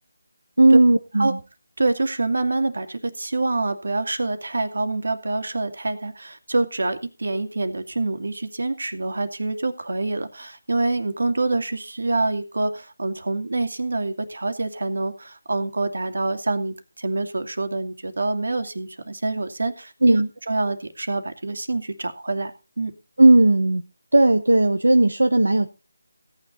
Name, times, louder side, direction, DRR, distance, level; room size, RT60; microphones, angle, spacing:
voice 1, 0.6-1.4 20.0-20.3 23.2-23.8 24.1-25.7, right 2 dB, 85° right, 7 dB, 1.2 m, -16 dB
voice 2, 1.8-20.2 20.5-22.9, right 2 dB, 70° right, 8 dB, 2.5 m, -26 dB
17.0 x 9.9 x 4.0 m, 0.32 s
figure-of-eight pair, 160°, 0 cm